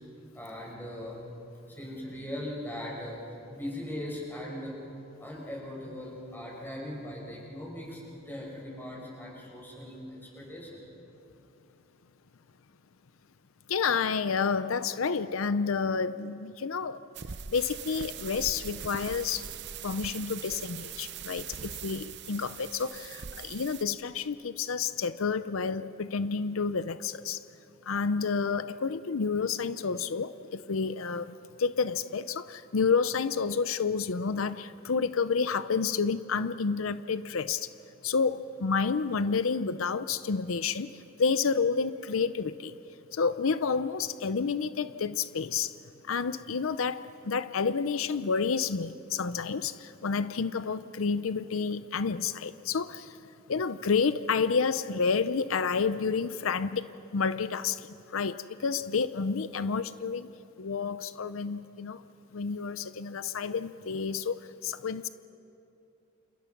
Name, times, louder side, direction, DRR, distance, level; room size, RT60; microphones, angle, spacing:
voice 1, 0.3-1.2 1.7-10.8, left 1 dB, 10° left, -3 dB, 6.1 m, -40 dB
voice 2, 13.7-17.0 17.5-19.4 19.8-27.4 27.9-30.3 30.7-31.3 31.6-37.7 38.0-40.9 41.2-42.7 43.1-45.7 46.1-47.0 47.3-49.7 50.0-53.0 53.5-56.8 57.1-57.8 58.1-58.3 58.6-60.3 60.6-62.0 62.3-64.4 64.6-65.1, left 5 dB, 85° left, 13 dB, 0.6 m, -29 dB
sound 1, 17.1-23.8, right 8 dB, 55° right, 0.8 m, -41 dB
30.0 x 28.0 x 6.0 m, 2.8 s
head